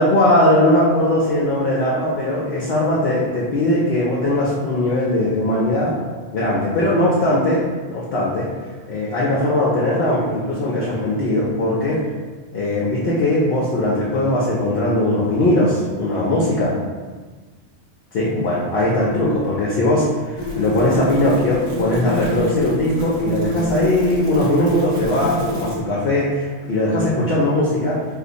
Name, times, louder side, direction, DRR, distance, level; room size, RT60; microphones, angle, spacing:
voice 1, 0.0-5.9 6.3-7.6 7.9-8.5 8.9-12.0 12.5-16.7 18.1-28.1, left 1 dB, 65° left, -6 dB, 0.7 m, -19 dB
sound 1, 18.7-18.9 20.4-25.8, equal, 45° right, 0.7 m, -26 dB
2.6 x 2.4 x 3.9 m, 1.4 s
omnidirectional pair, 1.2 m